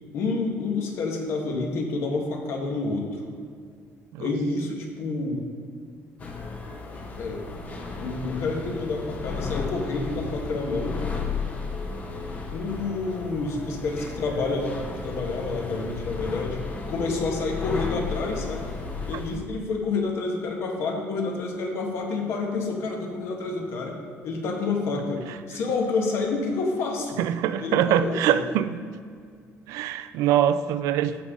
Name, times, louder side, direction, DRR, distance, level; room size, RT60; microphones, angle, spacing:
voice 1, 0.1-3.1 4.2-5.4 7.2-7.4 8.0-11.0 12.5-16.6 16.9-18.7 19.1-24.0 24.2-27.2 27.6-28.4, left 3 dB, 55° left, 1 dB, 1.5 m, -28 dB
sound 1, 6.2-19.4, left 4 dB, 25° left, 0.9 m, -34 dB
voice 2, 27.2-28.8 29.7-31.2, right 10 dB, 85° right, 13 dB, 0.4 m, -23 dB
14.0 x 5.4 x 3.7 m, 2.1 s
cardioid pair, 175°, 5 cm